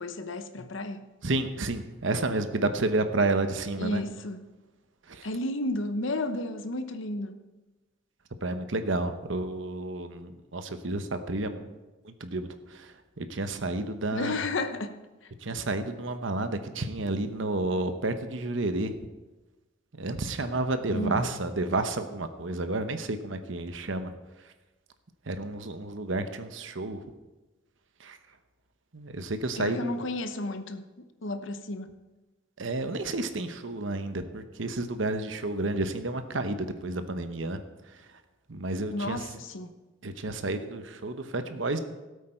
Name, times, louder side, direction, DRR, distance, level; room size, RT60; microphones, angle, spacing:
voice 1, 0.0-1.0 3.8-4.4 5.2-7.4 14.1-15.3 20.9-21.2 29.6-30.9 31.2-31.9 38.9-39.7, left 2 dB, 70° left, 9 dB, 1.0 m, -32 dB
voice 2, 1.2-4.0 5.0-5.3 8.4-11.6 12.0-14.3 15.4-19.0 20.0-24.1 24.4-24.5 25.3-27.0 28.0-28.2 28.9-30.1 32.6-38.2 38.5-39.3 40.0-41.8, right 2 dB, 65° right, 9 dB, 1.0 m, -31 dB
17.5 x 8.3 x 4.5 m, 1.1 s
head